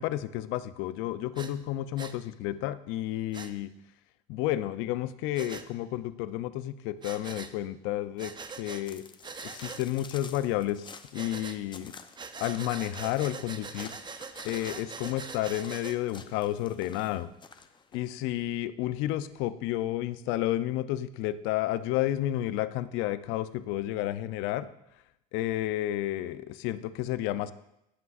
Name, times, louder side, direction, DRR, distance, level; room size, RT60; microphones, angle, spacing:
voice 1, 0.0-3.7 4.3-9.0 9.4-11.9 12.4-14.0 14.4-17.3 17.9-24.7 25.3-27.5, left 14 dB, 70° left, 14 dB, 0.6 m, -31 dB
Breathing, 1.3-1.5 2.0-2.1 3.3-3.5 5.3-5.6 7.0-7.5 8.2-8.8 9.2-9.8 11.1-11.6 12.2-16.0, right 5 dB, 20° right, 0.6 m, -42 dB
sound 1, 8.9-18.2, left 5 dB, 20° left, 0.6 m, -50 dB
17.0 x 5.8 x 2.4 m, 0.85 s
supercardioid pair, 90°, 21 cm